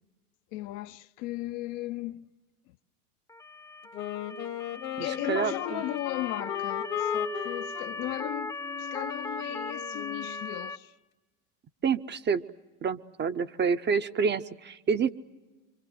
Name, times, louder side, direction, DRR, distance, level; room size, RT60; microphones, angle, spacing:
voice 1, 0.5-2.2 2.7-2.8 5.0-10.9, left 16 dB, 50° left, 0.7 m, -36 dB
Motor vehicle (road) / Siren, 3.3-10.8, left 2 dB, 5° left, 0.8 m, -39 dB
Wind instrument woodwind instrument, 3.9-10.5, left 9 dB, 65° left, 1.8 m, -36 dB
voice 2, 5.0-5.8 11.8-12.4 12.8-15.1, right 6 dB, 25° right, 0.8 m, -28 dB
26.0 x 26.0 x 7.7 m
hypercardioid pair, 95°, 46 cm